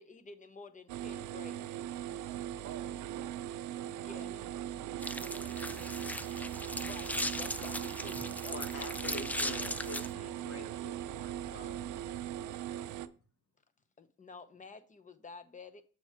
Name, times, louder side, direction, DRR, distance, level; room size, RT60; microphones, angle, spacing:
voice 1, 0.0-1.6 4.0-4.3 6.8-8.6 14.0-15.8, left 4 dB, 25° left, 0.8 m, -50 dB
sound 1, 0.9-13.1, right 11 dB, 80° right, 0.5 m, -40 dB
voice 2, 2.6-3.5 4.1-6.5, right 9 dB, 55° right, 0.8 m, -53 dB
sound 2, 5.0-10.1, left 1 dB, 5° left, 0.3 m, -38 dB
Piano, 5.4-13.1, right 7 dB, 10° right, 1.1 m, -54 dB
voice 3, 8.5-11.9, left 3 dB, 50° left, 1.4 m, -47 dB
7.1 x 4.6 x 4.4 m
cardioid pair, 90°, 30 cm